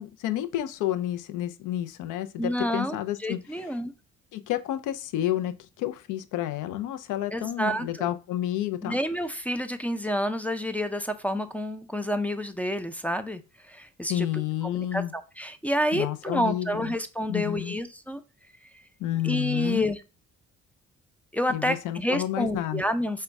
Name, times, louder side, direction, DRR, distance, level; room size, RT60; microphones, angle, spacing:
voice 1, 0.0-3.4 4.3-9.0 14.1-15.1 15.9-16.8 17.3-17.7 19.0-19.9 21.5-22.8, left 13 dB, 90° left, 0.5 m, -30 dB
voice 2, 2.4-3.9 7.3-8.1 8.8-13.4 13.7-14.3 14.6-18.2 19.2-20.0 21.3-23.2, equal, 5° left, 0.3 m, -29 dB
5.1 x 2.2 x 3.4 m
cardioid pair, 90°, 30 cm